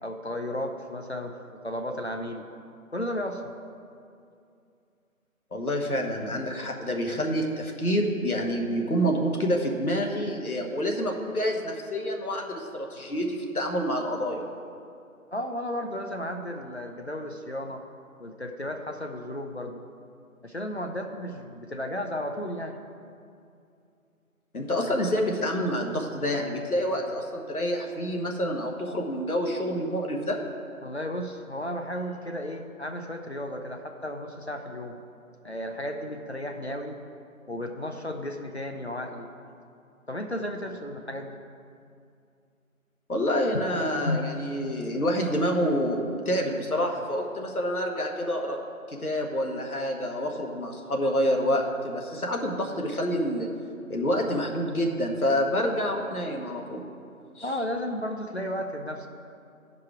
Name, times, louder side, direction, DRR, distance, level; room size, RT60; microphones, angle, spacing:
voice 1, 0.0-2.5 2.9-3.5 6.2-6.4 15.3-17.8 18.2-19.8 20.4-22.8 30.8-35.0 35.4-37.0 37.5-39.3 40.1-41.4 43.5-43.7 44.0-44.2 57.4-59.1, left 1 dB, 50° left, 4 dB, 0.5 m, -34 dB
voice 2, 5.5-14.4 24.5-30.4 43.1-48.6 48.9-53.5 53.9-56.8 57.4-57.5, equal, 80° left, 2 dB, 1.3 m, -27 dB
13.0 x 4.9 x 4.7 m, 2.5 s
figure-of-eight pair, 165°, 43 cm